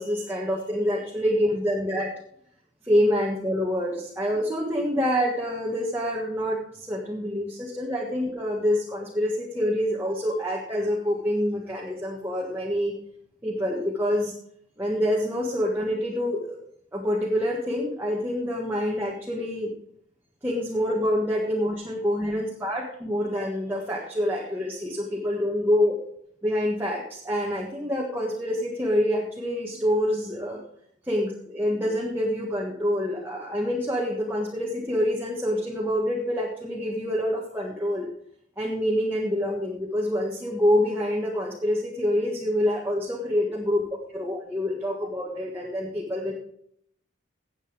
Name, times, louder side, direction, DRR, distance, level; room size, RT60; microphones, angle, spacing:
voice 1, 0.0-2.1 2.8-12.9 13.4-14.3 14.8-16.6 16.9-19.7 20.4-26.0 26.4-30.6 31.0-38.1 38.6-43.8 44.1-46.3, equal, 10° right, -4 dB, 1.6 m, -26 dB
17.0 x 8.2 x 3.6 m, 0.69 s
head